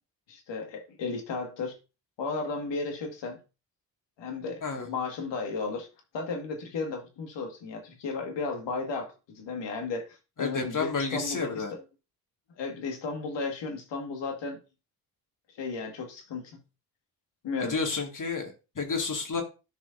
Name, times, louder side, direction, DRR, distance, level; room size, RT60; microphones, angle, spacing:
voice 1, 0.3-1.8 2.2-3.4 4.2-5.9 6.1-11.8 12.6-14.6 15.5-16.6 17.4-17.7, left 4 dB, 70° left, 2.1 m, -34 dB
voice 2, 10.4-11.7 17.6-19.4, left 4 dB, 45° left, 2.3 m, -31 dB
13.5 x 5.0 x 2.7 m
hypercardioid pair, 45°, 44 cm